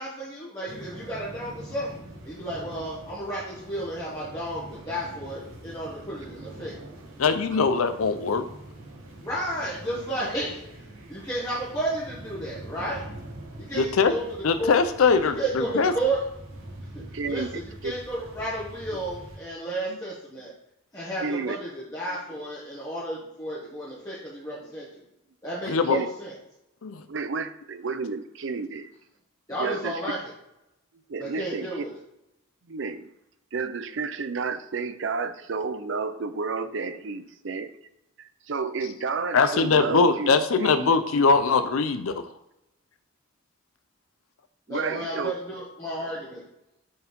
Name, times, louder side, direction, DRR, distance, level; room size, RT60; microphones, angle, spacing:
voice 1, 0.0-1.9 2.2-6.8 9.2-10.6 11.1-13.0 13.6-14.3 14.6-14.8 15.3-16.2 17.3-20.5 20.9-25.0 25.4-26.3 29.5-30.2 31.2-31.9 44.7-46.4, right 1 dB, 15° left, -8 dB, 1.4 m, -32 dB
sound 1, 0.7-19.4, right 1 dB, 75° right, 1.7 m, -44 dB
voice 2, 7.2-8.4 13.7-14.1 14.4-15.9 25.7-26.0 26.8-27.0 39.3-42.2, left 4 dB, 80° left, 10 dB, 0.5 m, -22 dB
voice 3, 17.0-17.9 18.9-19.0 21.2-21.6 25.8-26.1 27.1-28.9 29.6-30.0 31.1-31.8 32.7-33.1 33.5-37.7 38.2-40.9 44.7-45.3, right 4 dB, 60° right, 11 dB, 0.5 m, -31 dB
6.6 x 4.4 x 5.3 m, 0.85 s
head